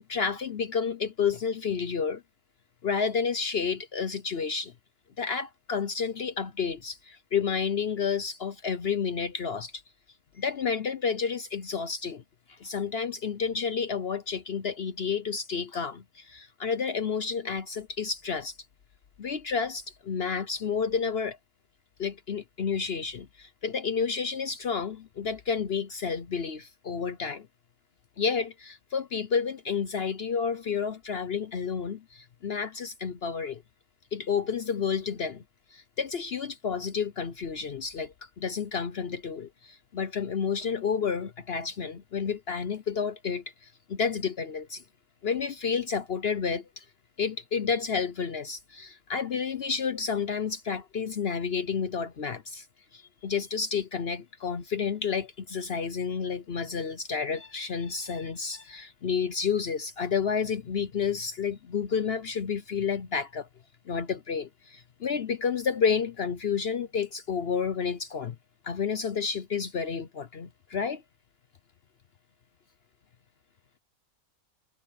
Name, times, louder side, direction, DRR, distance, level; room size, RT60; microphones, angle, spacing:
voice 1, 0.1-2.2 2.8-4.7 5.2-9.7 10.4-12.2 12.5-18.5 19.2-21.4 22.0-27.5 28.2-33.6 34.1-35.4 35.7-44.8 45.2-46.8 47.2-52.7 52.9-63.5 63.9-68.3 68.6-71.0, left 6 dB, 50° left, 0.9 m, -30 dB
omnidirectional pair, 1.5 m